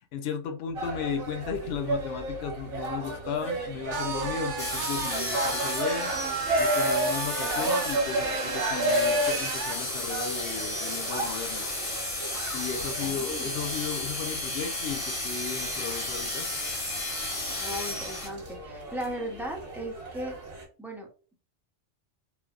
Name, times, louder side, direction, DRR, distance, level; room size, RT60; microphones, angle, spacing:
voice 1, 0.1-6.1 6.6-11.7 12.5-16.5, left 6 dB, 65° left, 0.8 m, -35 dB
sound 1, 0.7-20.6, right 1 dB, 60° right, 1.2 m, -33 dB
sound 2, 3.9-9.8, right 5 dB, 75° right, 0.9 m, -34 dB
sound 3, 4.6-18.3, left 2 dB, 35° left, 0.8 m, -33 dB
voice 2, 13.0-13.5 17.6-20.4 20.8-21.1, equal, 5° right, 0.4 m, -37 dB
3.3 x 2.1 x 2.4 m
omnidirectional pair, 1.2 m